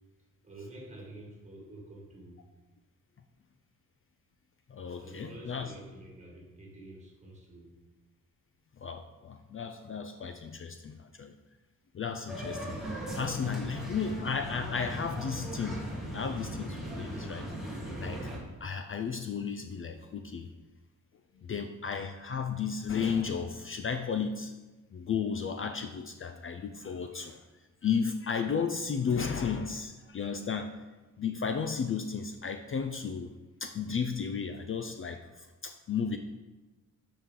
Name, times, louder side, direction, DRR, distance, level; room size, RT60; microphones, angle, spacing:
voice 1, 0.4-2.4 5.0-7.7 13.8-13.9, right 1 dB, 20° right, -2 dB, 1.9 m, -48 dB
voice 2, 4.7-5.7 8.8-11.3 11.9-12.7 13.1-15.8 16.1-17.5 18.0-18.3 18.6-20.5 21.4-24.5 24.9-27.4 27.8-30.8 31.2-33.3 33.6-36.2, left 6 dB, 40° left, 6 dB, 0.4 m, -34 dB
sound 1, 12.3-18.4, right 1 dB, ahead, 1.7 m, -38 dB
12.5 x 4.7 x 3.8 m, 1.2 s
wide cardioid pair, 155°, 33 cm